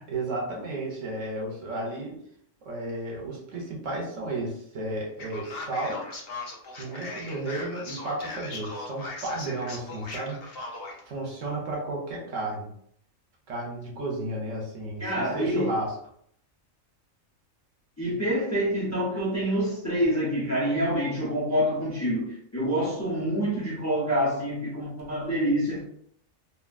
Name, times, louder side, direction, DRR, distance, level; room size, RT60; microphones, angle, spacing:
voice 1, 0.1-2.2 2.6-6.1 6.8-10.4 11.1-12.7 13.5-16.0, right 2 dB, 70° right, 0 dB, 1.1 m, -33 dB
Male speech man speaking, 5.2-11.0, left 3 dB, 55° left, 0.8 m, -38 dB
voice 2, 15.0-15.7 18.0-25.9, equal, 15° left, -5 dB, 0.6 m, -27 dB
2.8 x 2.6 x 2.5 m, 0.67 s
omnidirectional pair, 1.4 m